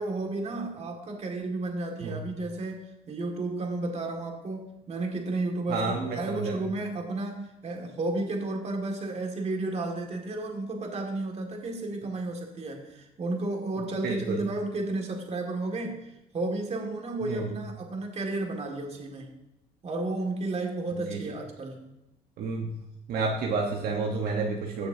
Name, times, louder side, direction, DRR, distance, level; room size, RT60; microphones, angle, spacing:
voice 1, 0.0-19.3 19.8-21.9, right 2 dB, 40° right, 2 dB, 2.1 m, -32 dB
voice 2, 5.7-6.6 14.0-14.5 17.2-17.5 21.1-21.2 22.4-22.7 23.1-24.9, right 4 dB, 65° right, 0 dB, 1.2 m, -30 dB
15.5 x 6.8 x 2.8 m, 0.94 s
cardioid pair, 110°, 17 cm